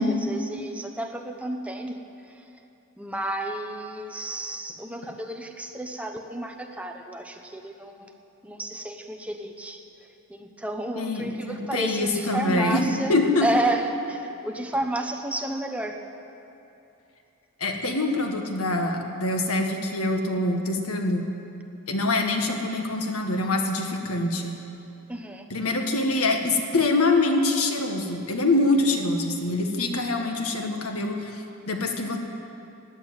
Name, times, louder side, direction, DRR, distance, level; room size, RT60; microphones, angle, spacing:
voice 1, 0.0-2.0 2.3-2.4 3.0-8.1 8.4-9.8 10.3-13.2 13.4-16.0 25.1-25.4, right 1 dB, 5° right, 4 dB, 0.9 m, -31 dB
voice 2, 11.0-13.5 17.6-21.3 21.9-24.6 25.5-32.2, left 2 dB, 85° left, 3 dB, 1.6 m, -25 dB
15.5 x 10.0 x 9.0 m, 2.8 s
head